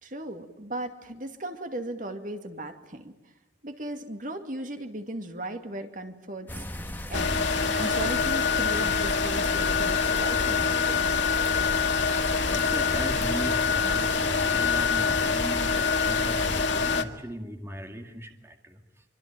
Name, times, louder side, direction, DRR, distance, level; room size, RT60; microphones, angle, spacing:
voice 1, 0.0-3.1 3.6-6.6 7.1-7.4 7.8-11.2, right 1 dB, 45° right, 6 dB, 2.4 m, -37 dB
sound 1, 6.5-16.7, left 1 dB, 10° left, 1.9 m, -38 dB
sound 2, 7.1-17.0, left 5 dB, 75° left, 1.9 m, -25 dB
voice 2, 12.5-19.1, equal, 15° right, 4 dB, 2.2 m, -38 dB
26.0 x 25.0 x 9.1 m, 0.90 s
head